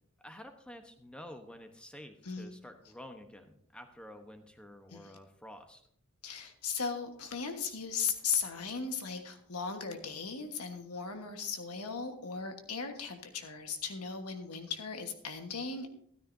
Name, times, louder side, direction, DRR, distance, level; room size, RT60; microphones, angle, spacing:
voice 1, 0.2-5.8, left 1 dB, 5° left, 6 dB, 1.0 m, -50 dB
voice 2, 6.2-15.9, left 6 dB, 90° left, 6 dB, 1.4 m, -37 dB
13.5 x 13.0 x 2.7 m, 0.66 s
head